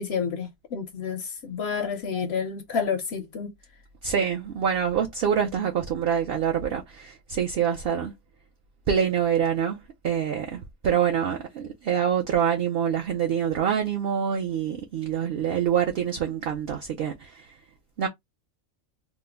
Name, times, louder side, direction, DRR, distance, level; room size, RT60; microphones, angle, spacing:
voice 1, 0.0-3.5, left 6 dB, 65° left, 0.7 m, -29 dB
voice 2, 4.0-8.1 8.9-17.5 18.0-18.1, right 8 dB, 60° right, 0.6 m, -26 dB
3.1 x 2.0 x 3.4 m
omnidirectional pair, 1.4 m